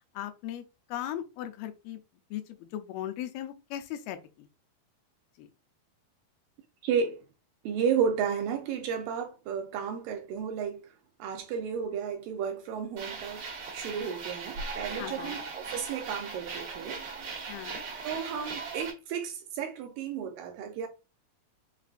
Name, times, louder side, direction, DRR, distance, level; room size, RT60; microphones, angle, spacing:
voice 1, 0.2-0.6 0.9-2.0 2.3-4.5 5.4-5.5 15.0-15.4 17.5-17.8, left 12 dB, 85° left, 2.4 m, -38 dB
voice 2, 6.8-7.2 7.7-10.9 11.2-13.5 13.7-17.0 18.0-20.9, right 7 dB, 80° right, 2.1 m, -32 dB
sound 1, 13.0-18.9, right 4 dB, 55° right, 1.8 m, -39 dB
5.7 x 2.4 x 2.4 m
omnidirectional pair, 4.3 m